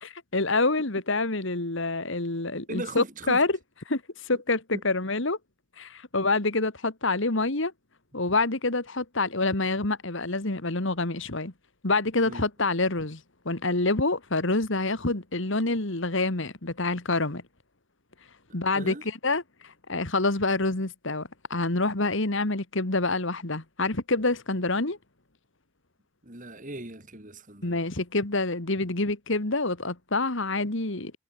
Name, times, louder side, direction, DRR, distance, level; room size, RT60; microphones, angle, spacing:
voice 1, 0.0-3.5 3.9-5.4 5.8-7.7 8.1-11.5 11.8-13.2 13.5-17.4 18.5-18.9 19.2-25.0 27.6-31.1, left 2 dB, 60° left, 2.0 m, -27 dB
voice 2, 2.7-3.4 4.3-4.4 4.7-4.8 12.2-12.5 18.7-19.0 26.2-27.9, right 1 dB, 40° right, 3.8 m, -38 dB
head